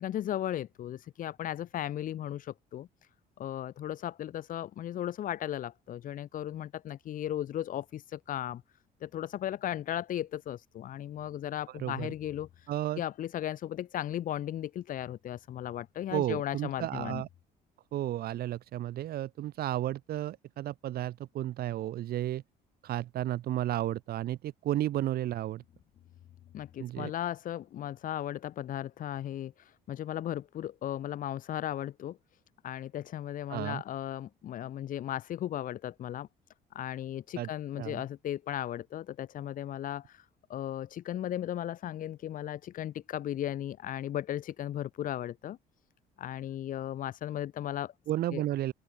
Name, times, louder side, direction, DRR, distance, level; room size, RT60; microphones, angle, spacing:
voice 1, 0.0-2.9 3.4-8.6 9.0-12.7 13.0-17.2 26.5-32.2 32.6-36.3 36.7-45.6 46.2-47.9 48.3-48.4, left 11 dB, 55° left, 0.8 m, -36 dB
voice 2, 11.7-12.1 12.7-13.0 16.1-17.3 17.9-22.4 22.8-25.6 26.8-27.1 33.5-33.8 37.4-37.5 37.8-38.0 48.1-48.7, right 13 dB, 65° right, 1.7 m, -33 dB
open air
cardioid pair, 110°, 17 cm